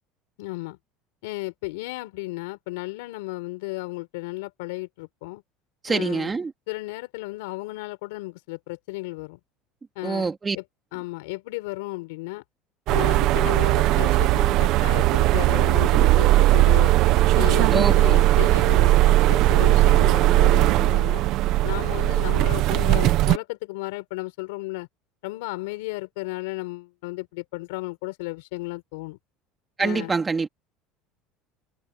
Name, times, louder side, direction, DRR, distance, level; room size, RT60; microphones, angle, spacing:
voice 1, 0.4-0.8 1.2-5.4 5.9-6.3 6.7-9.4 10.0-10.3 10.5-10.6 10.9-12.4 12.9-16.9 17.3-21.2 21.6-24.9 25.2-29.2 29.8-30.1, left 23 dB, 85° left, 4.6 m, -34 dB
voice 2, 5.8-6.5 10.0-10.6 17.7-18.2 29.8-30.5, right 4 dB, 20° right, 2.6 m, -25 dB
sound 1, 12.9-23.4, right 16 dB, 60° right, 1.2 m, -18 dB
supercardioid pair, 120°, 0 cm